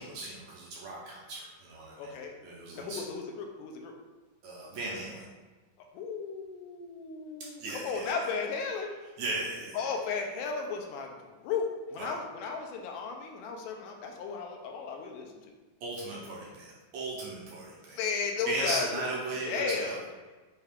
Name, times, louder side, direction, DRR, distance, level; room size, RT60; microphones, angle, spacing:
voice 1, 0.0-2.1 2.4-3.0 4.4-5.3 7.6-8.3 9.2-9.8 12.0-12.2 15.8-18.0 18.5-20.0, right 2 dB, 75° right, -5 dB, 1.7 m, -37 dB
voice 2, 2.0-2.4 2.7-3.9 5.9-8.9 9.7-15.3 17.9-19.1 19.4-20.0, left 5 dB, 85° left, 2 dB, 2.1 m, -34 dB
5.4 x 2.3 x 3.4 m, 1.3 s
omnidirectional pair, 3.8 m